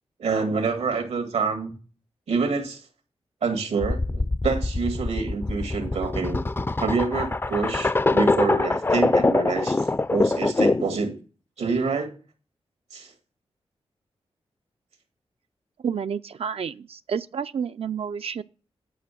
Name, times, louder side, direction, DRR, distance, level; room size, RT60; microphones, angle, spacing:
voice 1, 0.2-1.7 2.3-2.8 3.4-6.4 6.8-11.1 11.6-12.1 12.9-13.1, right 4 dB, 90° right, 2.0 m, -27 dB
sound 1, 3.8-11.0, left 2 dB, 20° left, 0.4 m, -24 dB
voice 2, 15.8-18.4, right 7 dB, 65° right, 0.4 m, -30 dB
9.3 x 5.8 x 7.0 m
cardioid pair, 65°, 11 cm